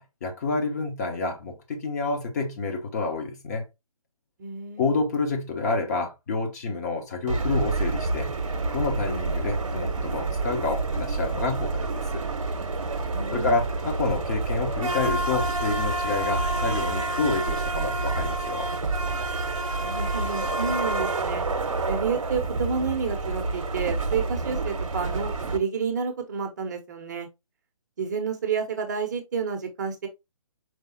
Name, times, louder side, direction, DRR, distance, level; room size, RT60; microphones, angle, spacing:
voice 1, 0.0-3.6 4.8-8.3 8.7-12.2 13.3-18.7, left 3 dB, 30° left, 0.9 m, -28 dB
voice 2, 4.4-4.9 13.1-13.5 19.8-21.5 21.9-27.3 28.0-30.1, right 5 dB, 30° right, 0.7 m, -30 dB
sound 1, 7.3-25.6, right 3 dB, 60° right, 0.8 m, -28 dB
4.8 x 3.6 x 2.8 m
figure-of-eight pair, 140°, 18 cm